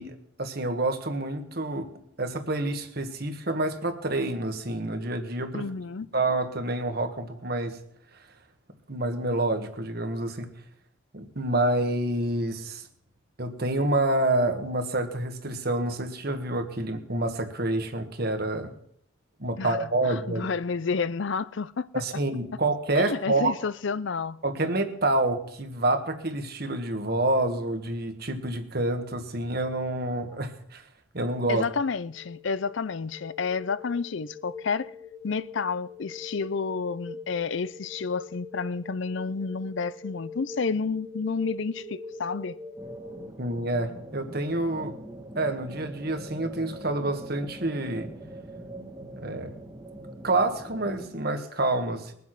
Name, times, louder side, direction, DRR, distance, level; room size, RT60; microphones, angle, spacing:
voice 1, 0.0-1.9 2.2-5.7 6.1-7.8 8.9-10.5 11.1-12.9 13.4-18.7 19.4-20.5 21.9-23.6 24.4-30.8 31.1-31.6 43.4-44.9 45.3-48.1 49.2-49.5 50.2-52.1, right 2 dB, 50° right, 1.6 m, -28 dB
voice 2, 5.5-6.1 19.6-19.8 20.1-21.9 22.9-24.4 31.5-34.9 35.2-42.6, left 5 dB, 65° left, 0.5 m, -30 dB
sound 1, 32.1-43.3, left 2 dB, 20° left, 1.3 m, -43 dB
sound 2, 42.8-51.1, right 1 dB, 15° right, 1.5 m, -43 dB
21.5 x 7.5 x 6.0 m
head